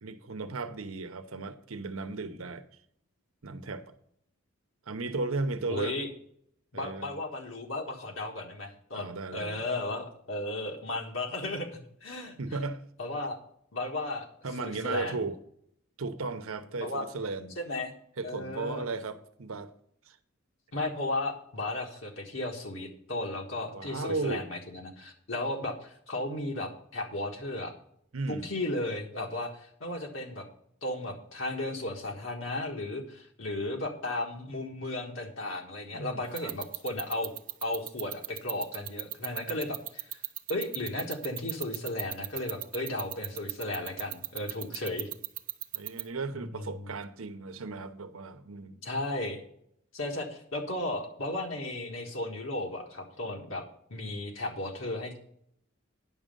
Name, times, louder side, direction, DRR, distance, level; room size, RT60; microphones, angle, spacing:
voice 1, 0.0-2.6 3.4-3.9 4.9-5.9 6.7-7.2 8.9-9.6 12.4-12.8 14.4-15.4 16.0-17.6 18.2-19.7 20.1-20.2 23.7-24.5 28.1-28.5 35.9-36.5 45.7-48.8, right 3 dB, 85° right, 0.9 m, -35 dB
voice 2, 5.7-6.1 6.7-12.6 13.0-13.4 13.7-14.3 14.6-15.2 16.8-17.1 17.6-17.9 18.2-18.8 20.7-27.7 28.3-30.4 30.8-37.3 37.6-40.2 40.5-45.1 46.3-46.9 48.8-49.4 49.9-53.6 53.9-55.2, left 2 dB, 70° left, 1.5 m, -35 dB
sound 1, 36.4-46.0, right 15 dB, 40° right, 0.5 m, -34 dB
9.8 x 6.3 x 5.4 m
head